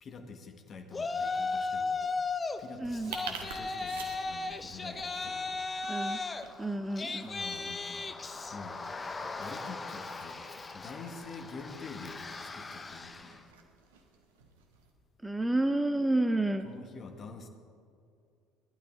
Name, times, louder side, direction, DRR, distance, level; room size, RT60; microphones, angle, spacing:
voice 1, 0.0-2.1 2.6-5.7 7.2-8.2 8.5-8.8 9.4-13.4 16.6-17.5, left 4 dB, 40° left, 6 dB, 1.6 m, -47 dB
Yell, 0.9-2.6 2.9-13.4, left 3 dB, 25° left, 0.9 m, -36 dB
voice 2, 2.8-3.1 5.9-6.2 6.6-7.3 15.2-16.7, right 2 dB, 10° right, 8 dB, 0.7 m, -30 dB
sound 1, 2.8-14.9, right 5 dB, 70° right, 1.4 m, -50 dB
19.5 x 12.0 x 3.8 m, 2.4 s
figure-of-eight pair, 60°, 0 cm